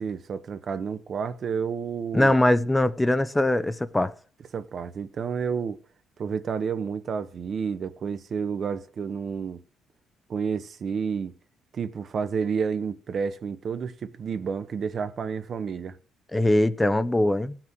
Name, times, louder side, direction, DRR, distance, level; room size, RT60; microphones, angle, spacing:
voice 1, 0.0-2.4 4.5-5.8 6.2-9.6 10.3-11.3 11.7-16.0, right 6 dB, 50° right, 1.0 m, -30 dB
voice 2, 2.1-4.1 16.3-17.6, left 1 dB, 10° left, 0.7 m, -22 dB
15.5 x 6.1 x 6.1 m
cardioid pair, 90°, 0 cm